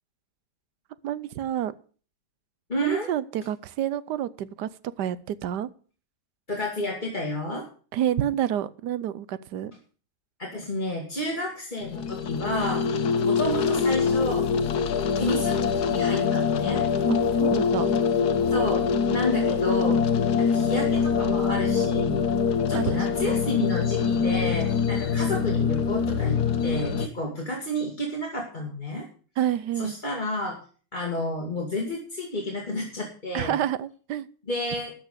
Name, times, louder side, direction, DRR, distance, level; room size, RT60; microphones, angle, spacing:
voice 1, 1.0-1.7 2.8-4.7 5.0-5.7 7.9-9.7 17.1-17.9 22.7-23.3 29.4-30.0 33.3-34.3, right 11 dB, 90° right, 17 dB, 1.4 m, -29 dB
voice 2, 2.7-3.1 6.5-7.7 10.4-12.8 13.2-14.5 15.2-16.8 18.5-20.0 20.4-22.2 22.7-29.1 29.8-30.6 30.9-33.6 34.5-34.9, left 1 dB, 30° left, -1 dB, 2.3 m, -30 dB
sound 1, 11.8-27.1, left 6 dB, 75° left, 1.6 m, -24 dB
13.0 x 6.1 x 8.2 m, 0.41 s
omnidirectional pair, 1.7 m